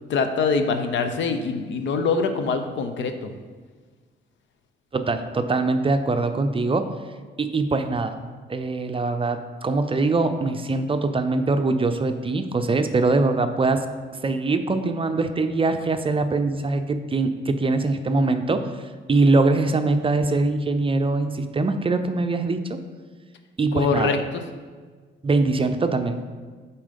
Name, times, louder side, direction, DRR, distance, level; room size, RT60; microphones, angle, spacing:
voice 1, 0.1-3.3 23.7-24.4, left 4 dB, 70° left, 8 dB, 0.7 m, -24 dB
voice 2, 4.9-6.9 7.4-8.2 8.5-13.8 14.2-18.7 19.1-22.8 23.6-24.1 25.2-26.2, right 3 dB, 25° right, 8 dB, 0.5 m, -22 dB
7.2 x 4.4 x 5.2 m, 1.5 s
cardioid pair, 90°, 20 cm